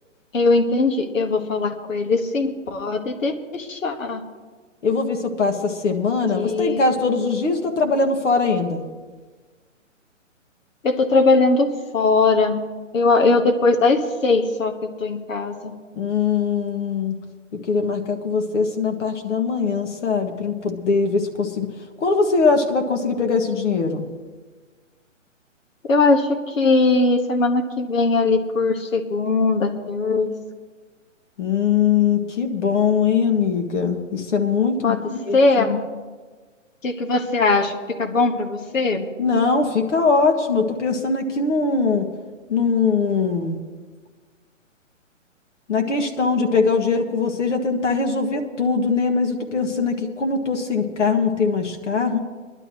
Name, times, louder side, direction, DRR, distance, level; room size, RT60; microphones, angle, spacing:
voice 1, 0.3-4.2 6.3-6.8 10.8-11.7 11.9-12.6 12.9-14.7 15.0-15.7 25.9-30.3 34.8-35.0 35.3-35.8 36.8-39.1, left 3 dB, 80° left, 4 dB, 1.5 m, -20 dB
voice 2, 4.8-8.8 15.9-17.1 17.7-21.7 22.0-24.0 31.4-35.8 39.2-42.1 42.5-43.6 45.7-52.2, left 4 dB, 65° left, 4 dB, 1.7 m, -21 dB
21.0 x 11.5 x 3.1 m, 1.4 s
hypercardioid pair, 150°, 38 cm